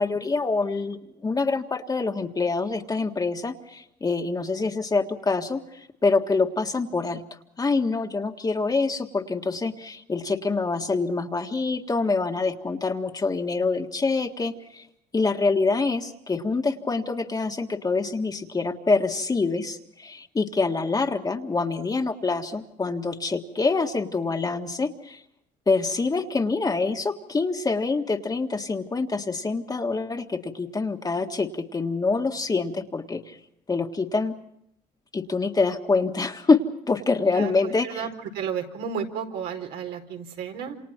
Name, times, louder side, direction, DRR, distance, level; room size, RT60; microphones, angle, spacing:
voice 1, 0.0-7.2 7.6-14.9 15.1-25.2 25.7-33.4 33.7-34.3 35.1-36.6 36.9-38.0, left 3 dB, 20° left, 3 dB, 1.7 m, -25 dB
voice 2, 37.3-40.7, right 7 dB, 85° right, 3 dB, 4.4 m, -33 dB
28.5 x 27.0 x 4.4 m, 0.74 s
cardioid pair, 110°, 17 cm